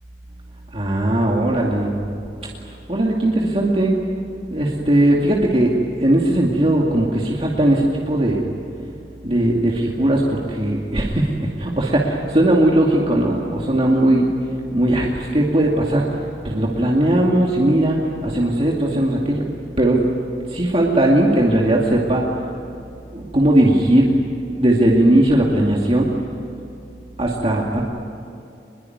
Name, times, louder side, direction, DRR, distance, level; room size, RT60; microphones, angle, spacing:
voice 1, 0.7-1.9 2.9-4.0 4.5-5.7 6.0-8.4 9.2-14.3 14.7-16.1 16.4-19.4 19.8-20.0 20.5-22.3 23.1-24.1 24.5-26.1 27.2-27.8, right 1 dB, 35° right, -3 dB, 2.5 m, -18 dB
26.0 x 21.5 x 9.6 m, 2.7 s
head